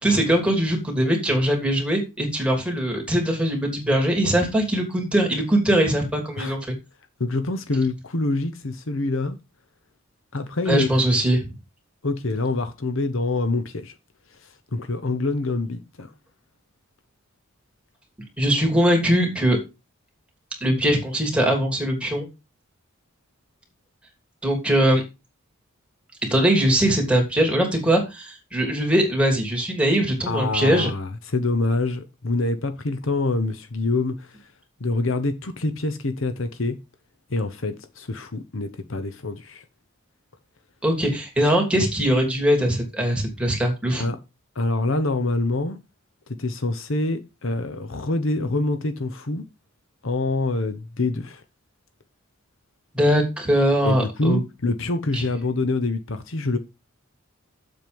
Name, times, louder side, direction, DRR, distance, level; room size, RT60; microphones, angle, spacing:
voice 1, 0.0-6.6 10.7-11.5 18.4-19.6 20.6-22.3 24.4-25.0 26.3-30.9 40.8-44.0 52.9-54.4 55.1-55.2, right 1 dB, 5° right, 3.1 m, -21 dB
voice 2, 7.2-9.4 10.3-10.9 12.0-13.9 14.4-16.1 30.3-34.4 34.8-36.8 37.3-39.6 44.0-44.2 44.5-45.8 46.4-49.4 50.0-51.4 53.8-56.6, left 2 dB, 60° left, 1.0 m, -26 dB
7.7 x 7.3 x 5.3 m
head